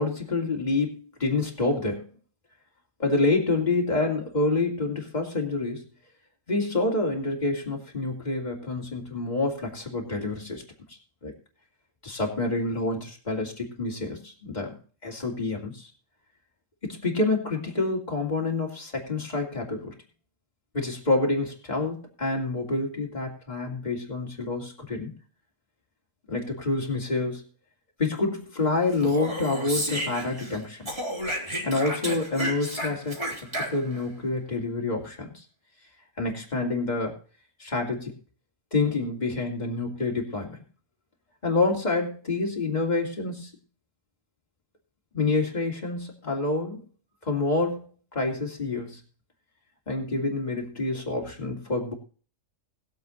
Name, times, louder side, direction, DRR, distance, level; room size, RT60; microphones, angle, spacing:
voice 1, 0.0-2.1 3.0-5.8 6.5-10.6 11.2-11.3 12.0-14.8 15.0-15.9 16.8-19.9 20.7-25.1 26.3-27.4 28.0-30.9 31.6-33.2 33.6-35.4 36.2-37.2 37.6-38.1 38.7-40.6 41.4-43.5 45.1-46.8 47.2-47.9 48.1-49.0 49.9-51.9, left 3 dB, 35° left, -1 dB, 3.1 m, -27 dB
Speech, 28.9-30.6 30.9-34.0, right 1 dB, 20° right, 3.7 m, -32 dB
21.0 x 7.6 x 2.7 m, 0.40 s
omnidirectional pair, 1.4 m